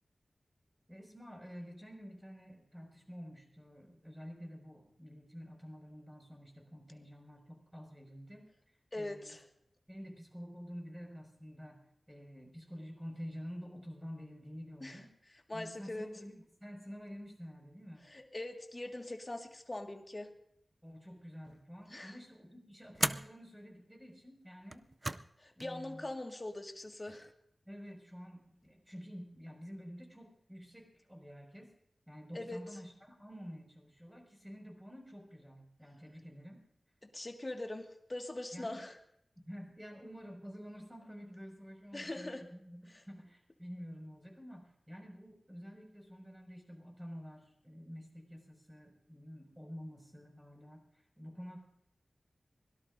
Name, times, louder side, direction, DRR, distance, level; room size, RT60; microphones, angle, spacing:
voice 1, 0.9-8.5 8.9-9.3 9.9-11.8 12.1-15.1 15.5-18.1 20.8-24.9 25.6-26.1 27.7-31.7 32.1-36.6 38.5-38.8 39.4-50.9 51.2-51.6, equal, 5° right, 0 dB, 5.7 m, -49 dB
voice 2, 8.9-9.4 14.8-15.0 15.5-16.1 18.1-20.3 21.9-22.1 25.4-27.3 32.3-32.6 37.1-39.0 41.9-42.4, left 2 dB, 30° left, 3 dB, 1.8 m, -42 dB
sound 1, 21.4-21.8 22.9-23.3 24.6-25.3 25.6-25.7 26.8-27.3, right 2 dB, 30° right, 0.5 m, -37 dB
23.5 x 17.5 x 2.6 m, 0.73 s
wide cardioid pair, 100°, 0 cm